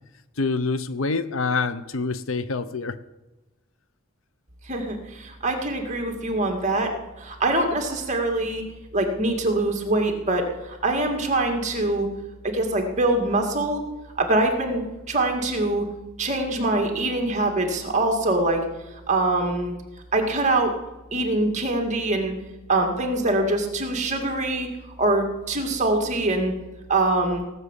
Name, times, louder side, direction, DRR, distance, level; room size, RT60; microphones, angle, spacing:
voice 1, 0.4-3.0, left 4 dB, 65° left, 13 dB, 0.7 m, -26 dB
voice 2, 4.7-8.6 8.9-12.1 12.4-13.8 14.2-15.9 16.2-18.6 19.1-19.7 20.1-20.7 21.1-22.3 22.7-24.7 25.0-26.5 26.9-27.4, right 2 dB, 35° right, 3 dB, 2.2 m, -24 dB
18.0 x 6.8 x 8.3 m, 1.1 s
head